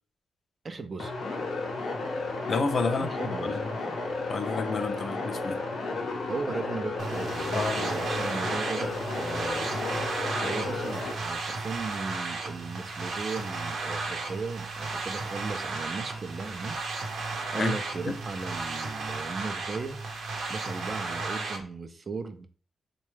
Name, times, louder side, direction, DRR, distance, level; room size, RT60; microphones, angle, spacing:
voice 1, 0.6-1.1 2.9-3.6 6.3-9.7 10.4-16.8 17.5-20.0 20.5-22.5, right 4 dB, 35° right, 0.4 m, -37 dB
sound 1, 1.0-11.1, left 3 dB, 90° left, 0.8 m, -33 dB
voice 2, 2.5-3.7 4.3-5.6 7.5-7.9 17.6-17.8 18.1-18.2, left 4 dB, 50° left, 0.4 m, -30 dB
sound 2, 7.0-21.6, right 3 dB, 80° right, 0.7 m, -34 dB
3.9 x 2.2 x 3.1 m
wide cardioid pair, 130°, 0 cm